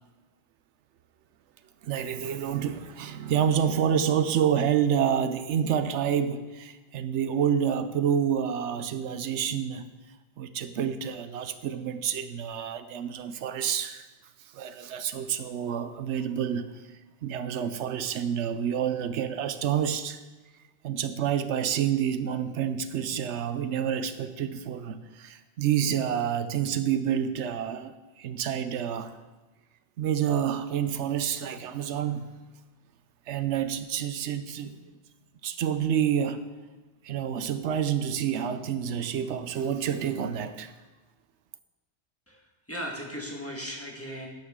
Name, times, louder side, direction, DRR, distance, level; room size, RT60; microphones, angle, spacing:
voice 1, 1.8-9.9 10.4-14.1 14.5-16.8 17.2-20.2 20.8-29.2 30.0-32.3 33.3-34.8 35.4-36.5 37.0-40.7, right 8 dB, 85° right, 11 dB, 1.0 m, -28 dB
voice 2, 42.3-44.3, equal, 10° left, -1 dB, 1.7 m, -37 dB
12.5 x 9.4 x 3.7 m, 1.2 s
omnidirectional pair, 1.2 m